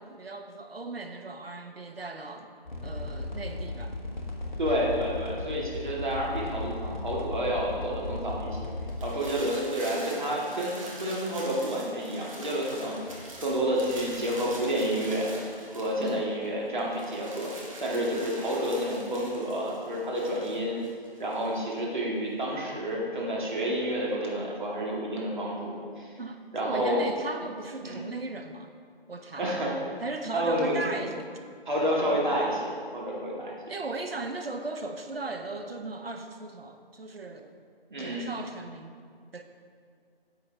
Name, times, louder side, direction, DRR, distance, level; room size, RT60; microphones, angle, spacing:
voice 1, 0.0-2.5 2.8-4.2 16.0-16.3 26.2-28.7 29.1-29.5 30.0-31.3 33.7-37.5 38.0-38.9 39.3-39.4, right 3 dB, 70° right, 6 dB, 1.0 m, -37 dB
sound 1, 2.7-9.1, left 2 dB, 50° left, 1.2 m, -36 dB
voice 2, 4.6-8.7 9.0-15.4 15.7-20.8 21.2-26.1 26.5-27.0 27.8-28.0 29.4-29.7 30.3-31.0 31.7-33.6 37.9-38.3, equal, 50° right, -4 dB, 2.4 m, -30 dB
sound 2, 8.9-16.5 16.8-21.6, right 1 dB, 35° right, 1.4 m, -44 dB
9.8 x 7.7 x 3.6 m, 2.1 s
figure-of-eight pair, 155°, 31 cm